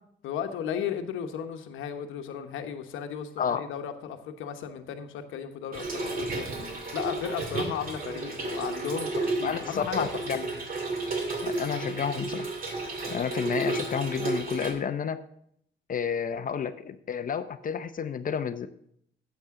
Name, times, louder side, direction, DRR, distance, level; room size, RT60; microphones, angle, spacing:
voice 1, 0.2-6.5 6.9-10.1 10.3-10.5, left 8 dB, 85° left, 7 dB, 1.0 m, -35 dB
voice 2, 3.4-3.7 9.4-10.4 11.4-12.5 13.1-15.2 15.9-18.7, left 7 dB, 45° left, 11 dB, 0.6 m, -30 dB
Trickle dribble / Fill (with liquid), 5.7-14.7, right 2 dB, 45° right, 2.3 m, -32 dB
12.0 x 8.1 x 3.7 m, 0.68 s
cardioid pair, 90°, 20 cm